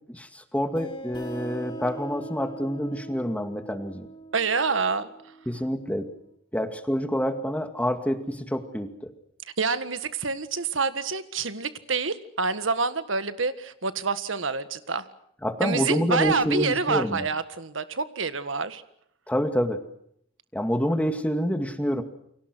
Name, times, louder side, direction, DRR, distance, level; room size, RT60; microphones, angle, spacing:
voice 1, 0.1-4.1 5.5-6.1 6.5-9.1 15.4-17.3 19.3-19.8 20.5-22.0, equal, 5° left, 7 dB, 2.2 m, -27 dB
sound 1, 0.7-6.1, right 1 dB, 25° left, 4.8 m, -41 dB
voice 2, 4.3-5.1 9.6-15.0 15.6-18.8, right 4 dB, 85° right, 11 dB, 1.7 m, -27 dB
29.5 x 24.5 x 6.3 m, 0.71 s
head